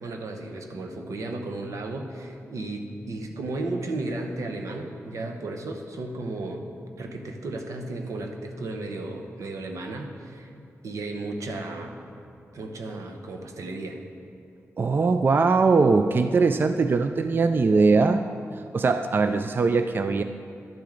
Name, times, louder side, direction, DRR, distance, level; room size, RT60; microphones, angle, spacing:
voice 1, 0.0-6.7 7.0-10.5 10.8-12.0 12.5-14.0, right 2 dB, 85° right, 4 dB, 0.8 m, -34 dB
voice 2, 14.8-18.2 18.7-20.2, right 4 dB, 40° right, 8 dB, 0.3 m, -21 dB
11.5 x 7.3 x 3.8 m, 2.4 s
cardioid pair, 80°, 5 cm